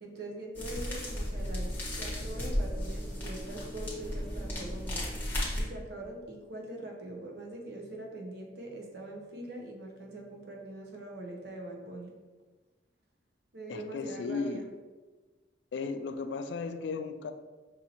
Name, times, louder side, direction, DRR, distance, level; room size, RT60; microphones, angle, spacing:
voice 1, 0.0-5.1 5.5-12.1 13.5-14.7, right 1 dB, 60° right, 1 dB, 0.7 m, -43 dB
sound 1, 0.5-5.6, equal, 10° left, 1.1 m, -34 dB
voice 2, 13.7-14.7 15.7-17.3, left 4 dB, 70° left, 9 dB, 0.3 m, -35 dB
5.3 x 2.7 x 2.8 m, 1.3 s
head